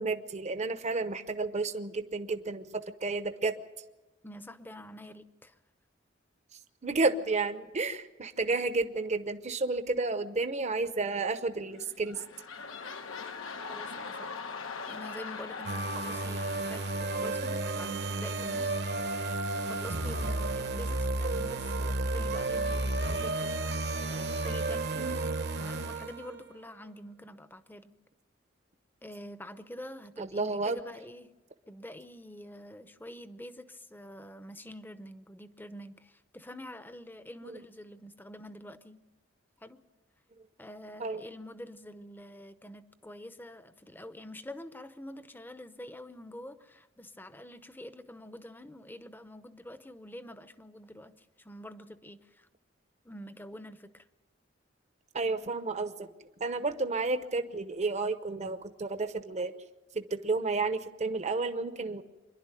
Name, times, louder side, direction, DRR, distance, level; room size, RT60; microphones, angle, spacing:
voice 1, 0.0-3.6 6.8-12.2 25.0-25.2 30.2-30.8 37.4-37.6 41.0-41.2 55.1-56.1 56.4-59.5 59.9-62.0, right 3 dB, 35° right, 10 dB, 0.8 m, -31 dB
voice 2, 4.2-5.5 13.7-14.4 14.9-19.1 19.6-25.3 25.6-27.9 29.0-31.3 31.7-39.0 39.6-39.8 40.6-52.5 53.0-54.0, left 1 dB, 10° left, 11 dB, 0.7 m, -46 dB
sound 1, 11.7-18.3 18.8-18.9, left 5 dB, 90° left, 1.2 m, -42 dB
sound 2, 15.7-26.5, right 2 dB, 55° right, 1.1 m, -32 dB
25.5 x 11.5 x 9.0 m, 1.1 s
head